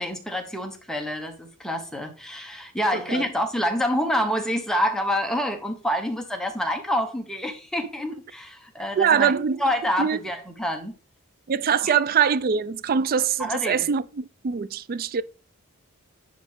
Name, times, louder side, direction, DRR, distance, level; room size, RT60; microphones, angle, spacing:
voice 1, 0.0-9.3 9.6-11.0 11.8-11.9 13.4-13.9, equal, 5° left, 1.0 m, -27 dB
voice 2, 2.9-3.3 9.0-9.6 10.0-10.2 11.5-15.2, right 7 dB, 40° right, 0.3 m, -23 dB
9.9 x 3.9 x 3.5 m
head